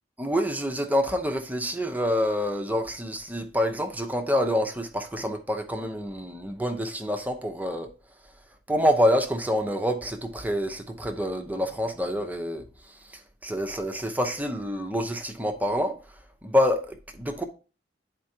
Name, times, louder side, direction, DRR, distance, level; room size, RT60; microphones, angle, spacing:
voice 1, 0.2-7.9 8.7-12.6 13.4-16.0 16.4-17.4, equal, 10° right, 0.7 m, -27 dB
11.0 x 4.4 x 2.8 m
head